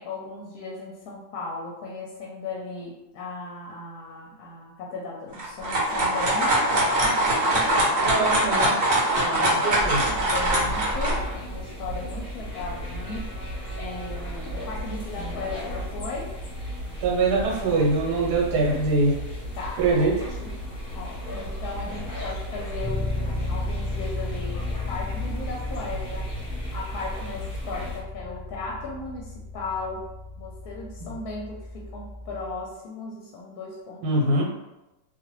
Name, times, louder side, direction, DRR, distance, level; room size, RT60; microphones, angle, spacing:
voice 1, 0.0-8.5 9.3-13.3 13.8-16.3 19.5-20.6 20.9-26.3 26.7-30.1 30.4-34.4, left 3 dB, 70° left, -3 dB, 1.0 m, -37 dB
sound 1, 5.3-11.2, right 1 dB, 50° right, 0.9 m, -22 dB
voice 2, 8.0-8.8 9.1-10.0 17.0-19.2 19.8-20.1 31.0-31.1 34.0-34.4, right 3 dB, 75° right, -2 dB, 1.3 m, -23 dB
sound 2, 9.8-28.0, equal, 35° left, 1.1 m, -35 dB
Bass guitar, 22.8-32.6, left 2 dB, 5° left, 0.5 m, -34 dB
2.6 x 2.4 x 3.0 m, 0.96 s
omnidirectional pair, 1.8 m